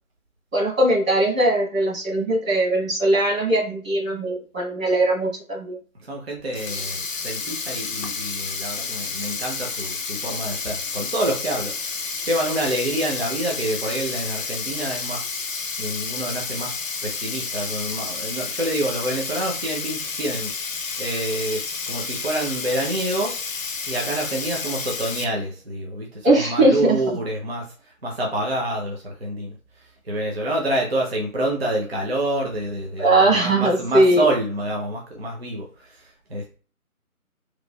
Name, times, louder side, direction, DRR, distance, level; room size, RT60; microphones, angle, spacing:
voice 1, 0.5-5.8 26.2-27.0 33.0-34.2, right 1 dB, 65° right, -2 dB, 1.4 m, -20 dB
voice 2, 6.0-16.7 17.0-23.4 23.9-36.5, right 1 dB, 45° right, -1 dB, 0.6 m, -27 dB
Sink (filling or washing), 6.4-25.2, left 5 dB, 60° left, 0.6 m, -30 dB
3.0 x 2.2 x 2.2 m, 0.39 s
figure-of-eight pair, 155°, 44 cm